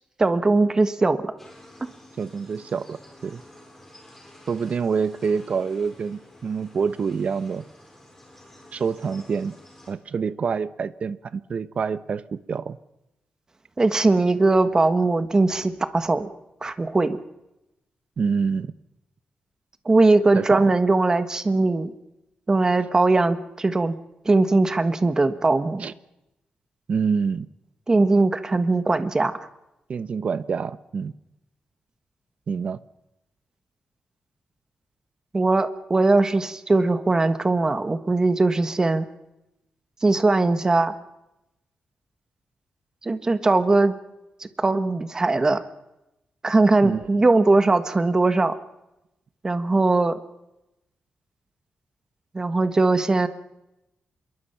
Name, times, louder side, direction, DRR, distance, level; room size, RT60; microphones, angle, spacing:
voice 1, 0.2-1.3 13.8-16.3 16.6-17.2 19.8-21.9 22.5-23.9 24.2-25.9 27.9-29.3 35.3-39.0 40.0-40.9 43.0-43.9 44.4-45.6 46.4-48.5 49.4-50.2 52.3-53.3, right 3 dB, 25° right, 10 dB, 1.5 m, -20 dB
sound 1, 1.4-9.9, left 1 dB, 5° left, 7.6 m, -50 dB
voice 2, 2.2-3.4 4.5-7.6 8.7-9.5 9.9-12.8 18.2-18.7 20.3-20.7 25.8-25.9 26.9-27.5 29.9-31.1 32.5-32.8 46.8-47.2, right 5 dB, 50° right, 14 dB, 1.0 m, -27 dB
26.5 x 23.0 x 5.8 m, 0.91 s
wide cardioid pair, 140°, 3 cm